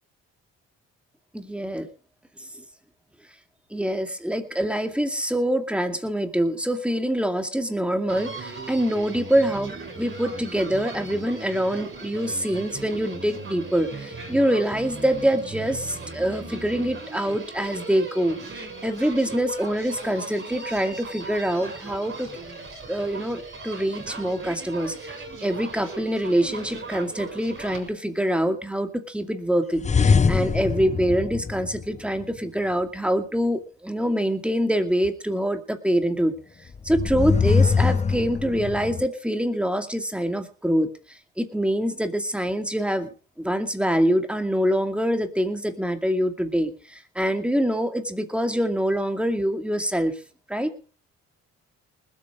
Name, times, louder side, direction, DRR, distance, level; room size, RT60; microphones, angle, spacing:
voice 1, 1.3-1.9 2.4-2.6 3.7-22.3 22.9-36.3 36.8-43.1 43.4-50.2 50.5-50.7, equal, 5° right, 6 dB, 2.4 m, -25 dB
Human voice, 8.1-27.9, right 3 dB, 40° right, 6.6 m, -38 dB
sound 1, 29.8-32.2 36.7-39.1, left 5 dB, 25° left, 0.6 m, -22 dB
20.0 x 8.4 x 5.1 m, 0.37 s
cardioid pair, 90°, 30 cm